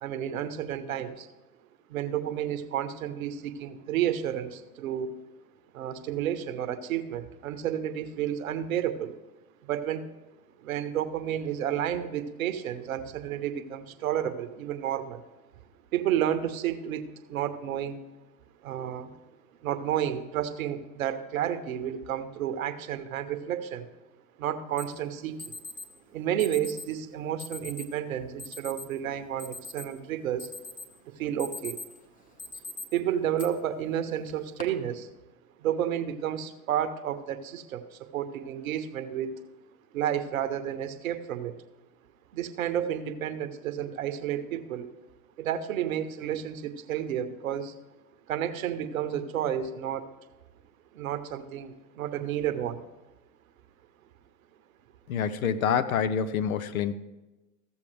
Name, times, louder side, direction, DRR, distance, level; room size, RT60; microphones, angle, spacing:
voice 1, 0.0-1.3 1.9-5.1 5.7-9.2 9.6-10.1 10.6-15.2 15.9-18.0 18.6-19.1 19.6-23.9 24.4-25.6 26.1-30.5 31.1-31.8 32.9-35.1 35.6-39.3 39.9-41.5 42.3-44.9 45.4-47.7 48.3-50.1 50.9-52.8, right 10 dB, 75° right, 9 dB, 1.0 m, -31 dB
Alarm, 24.8-24.9 25.4-25.9 26.4-26.9 27.4-27.9 28.4-28.9 29.2-30.0 30.4-30.9 31.2-32.0 32.4-32.8 33.4-33.5 34.3-34.6, left 2 dB, 20° left, 1.2 m, -40 dB
voice 2, 55.1-56.9, left 7 dB, 75° left, 13 dB, 0.8 m, -27 dB
14.5 x 7.1 x 3.2 m, 1.1 s
hypercardioid pair, 95°, 42 cm